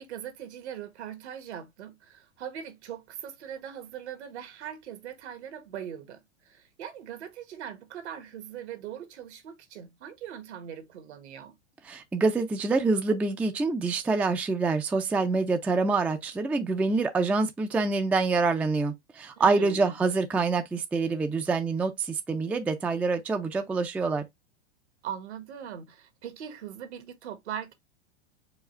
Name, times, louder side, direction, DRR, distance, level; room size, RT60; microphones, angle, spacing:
voice 1, 0.0-11.5 19.4-19.9 25.0-27.7, right 9 dB, 75° right, 1.4 m, -40 dB
voice 2, 11.9-24.3, right 3 dB, 5° right, 0.4 m, -26 dB
4.8 x 2.4 x 4.3 m
hypercardioid pair, 110°, 34 cm